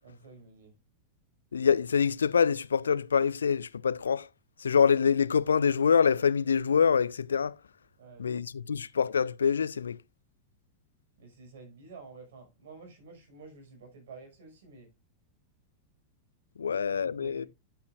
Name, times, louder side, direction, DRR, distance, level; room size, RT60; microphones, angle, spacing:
voice 1, 0.0-0.7 8.0-8.8 11.2-14.9 16.7-17.5, right 4 dB, 60° right, 5.5 m, -51 dB
voice 2, 1.5-4.3 4.6-7.6 8.2-10.0 16.6-17.5, left 6 dB, 70° left, 0.4 m, -25 dB
12.0 x 8.5 x 2.5 m
figure-of-eight pair, 90°, 0 cm